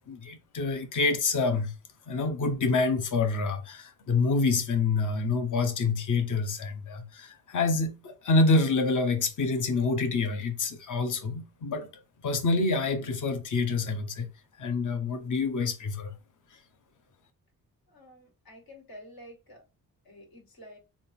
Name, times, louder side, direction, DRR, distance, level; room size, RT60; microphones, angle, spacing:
voice 1, 0.1-1.7 2.1-11.9 12.2-14.3 14.6-16.1, left 3 dB, 60° left, 0.9 m, -27 dB
voice 2, 17.9-19.6 20.0-20.8, equal, 75° left, 2.1 m, -49 dB
3.6 x 2.4 x 4.1 m
cardioid pair, 95°, 35 cm